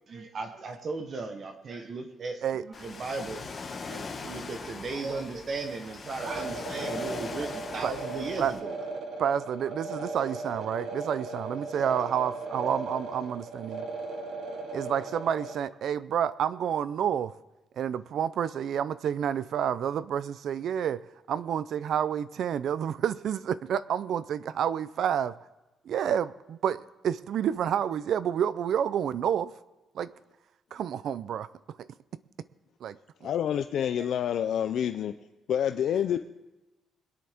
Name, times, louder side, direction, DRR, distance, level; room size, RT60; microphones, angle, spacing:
voice 1, 0.1-3.5 3.9-8.7 34.0-34.1, right 3 dB, 35° right, 6 dB, 1.0 m, -36 dB
Ocean, 2.7-8.6, left 4 dB, 25° left, 1.6 m, -41 dB
sound 1, 6.2-15.6, right 3 dB, 80° right, 1.9 m, -37 dB
voice 2, 9.2-13.9 14.7-17.3 17.8-25.3 25.8-29.5 29.9-30.1 30.7-31.5 31.8-31.9 32.8-33.3, right 9 dB, 55° right, 17 dB, 0.4 m, -29 dB
voice 3, 33.2-35.2 35.5-36.2, left 9 dB, 60° left, 8 dB, 0.4 m, -27 dB
21.5 x 10.5 x 3.5 m, 1.1 s
cardioid pair, 175°, 0 cm